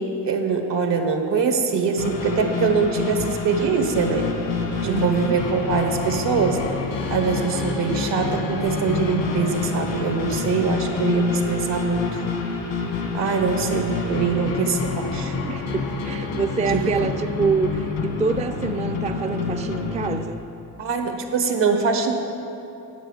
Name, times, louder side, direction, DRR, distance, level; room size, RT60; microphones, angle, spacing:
voice 1, 0.0-4.3 4.8-6.6 7.1-12.2 13.1-15.3 16.7-16.9 20.8-22.1, right 5 dB, 65° right, 5 dB, 1.4 m, -23 dB
sound 1, 2.0-20.2, left 4 dB, 90° left, 1.4 m, -27 dB
voice 2, 4.8-5.4 14.3-14.6 15.5-20.4, right 5 dB, 15° right, 7 dB, 0.4 m, -26 dB
9.1 x 7.9 x 6.4 m, 2.9 s
supercardioid pair, 55°, 45 cm